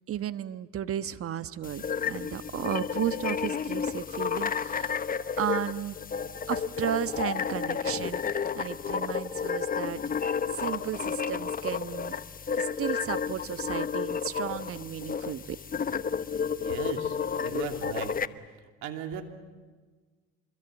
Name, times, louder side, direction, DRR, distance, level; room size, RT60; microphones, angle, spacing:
voice 1, 0.1-6.0 6.5-8.2 8.5-12.2 12.5-15.6, right 11 dB, 50° right, 13 dB, 1.2 m, -34 dB
sound 1, 1.6-18.3, left 6 dB, 30° left, 1.0 m, -31 dB
voice 2, 16.5-18.1 18.8-19.2, right 9 dB, 75° right, 5 dB, 3.0 m, -37 dB
26.0 x 23.0 x 9.1 m, 1.4 s
supercardioid pair, 80°, 30 cm